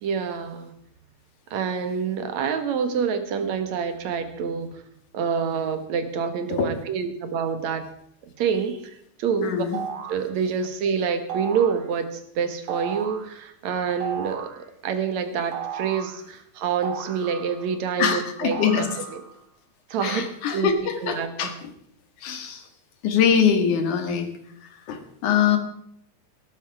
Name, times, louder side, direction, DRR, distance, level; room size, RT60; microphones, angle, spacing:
voice 1, 0.0-0.7 1.5-4.8 5.1-7.9 8.4-9.6 10.1-14.5 14.8-19.2 19.9-20.2 20.5-20.7 21.0-21.5, right 6 dB, 70° right, 9 dB, 2.8 m, -27 dB
voice 2, 9.4-9.8 18.0-18.9 20.0-21.7 22.2-22.7 23.0-24.3 24.6-25.6, left 7 dB, 85° left, 7 dB, 3.3 m, -23 dB
sound 1, 9.7-10.3 11.3-11.8 12.7-13.3 14.0-14.6 15.5-16.2 16.8-17.8 18.5-19.3, right 7 dB, 90° right, 3.1 m, -34 dB
17.5 x 12.5 x 4.8 m, 0.71 s
omnidirectional pair, 3.4 m